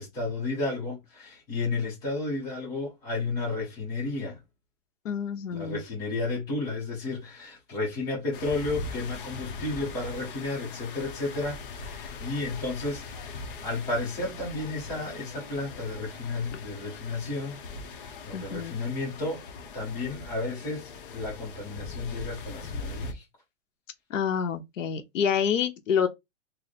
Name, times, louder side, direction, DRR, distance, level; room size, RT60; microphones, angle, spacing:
voice 1, 0.0-4.4 5.5-17.6 17.9-19.4 19.7-23.2, left 3 dB, 10° left, 0.7 m, -32 dB
voice 2, 5.0-5.8 16.5-16.6 18.3-18.8 24.1-26.1, left 7 dB, 85° left, 0.9 m, -28 dB
sound 1, 8.3-23.1, left 4 dB, 45° left, 0.7 m, -41 dB
3.2 x 2.1 x 3.9 m
supercardioid pair, 180°, 37 cm